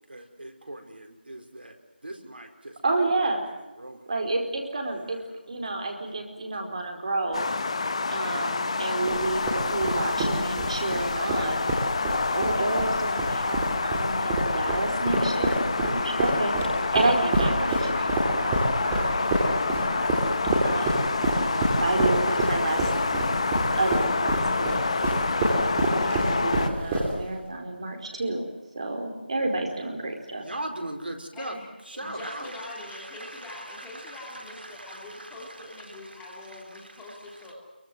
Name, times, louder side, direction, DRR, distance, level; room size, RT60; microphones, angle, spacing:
voice 1, 0.1-1.7 2.0-2.7 3.3-3.4 3.8-4.0 15.8-16.9 17.7-17.8 18.4-18.8 30.4-31.5 31.9-36.2 36.7-37.0, right 1 dB, 70° right, 5 dB, 4.7 m, -40 dB
voice 2, 2.8-3.4 4.1-5.2 5.5-7.5 8.1-11.7 12.3-20.2 20.6-22.9 23.3-23.4 23.7-24.9 25.4-28.4 28.7-30.4, right 2 dB, 35° right, 3 dB, 4.7 m, -30 dB
sound 1, 7.3-26.7, left 3 dB, 35° left, 1.5 m, -28 dB
sound 2, 9.1-27.4, right 2 dB, 10° right, 3.5 m, -28 dB
voice 3, 31.3-31.7 31.9-37.5, left 2 dB, 5° left, -4 dB, 2.8 m, -43 dB
25.0 x 23.5 x 7.8 m, 1.1 s
figure-of-eight pair, 170°, 6 cm